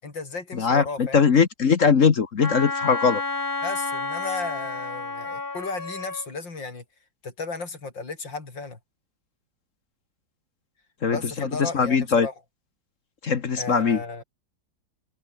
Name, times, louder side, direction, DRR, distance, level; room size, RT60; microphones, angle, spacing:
voice 1, 0.0-1.2 3.6-6.8 7.2-8.8 11.1-12.3 13.6-14.2, left 3 dB, 80° left, 5.1 m, -34 dB
voice 2, 0.5-3.2 11.0-11.2 11.6-12.3 13.2-14.0, left 6 dB, 45° left, 1.5 m, -20 dB
Wind instrument woodwind instrument, 2.4-6.3, left 3 dB, 30° left, 2.5 m, -30 dB
omnidirectional pair, 2.0 m